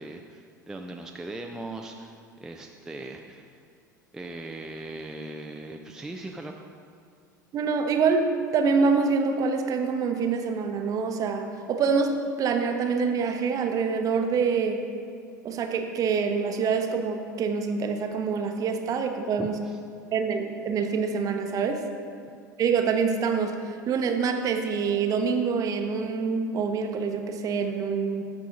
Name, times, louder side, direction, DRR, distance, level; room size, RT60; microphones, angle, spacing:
voice 1, 0.0-3.6 4.1-6.5 19.4-19.8, right 2 dB, 5° right, 2 dB, 0.4 m, -39 dB
voice 2, 7.5-12.1 12.4-14.8 15.4-19.6 20.1-21.8 22.6-28.2, right 5 dB, 35° right, 5 dB, 0.8 m, -26 dB
13.5 x 4.8 x 3.8 m, 2.3 s
figure-of-eight pair, 75°, 10 cm